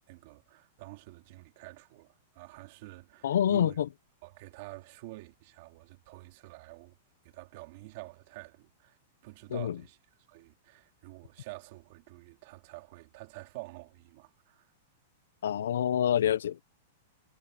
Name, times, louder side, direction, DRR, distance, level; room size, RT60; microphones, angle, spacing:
voice 1, 0.0-3.8 4.2-7.0 7.2-9.0 9.2-10.0 10.3-14.7, right 22 dB, 40° right, 3.2 m, -48 dB
voice 2, 3.2-3.9 9.5-9.8 15.4-16.6, left 10 dB, 85° left, 0.6 m, -27 dB
supercardioid pair, 175°, 0 cm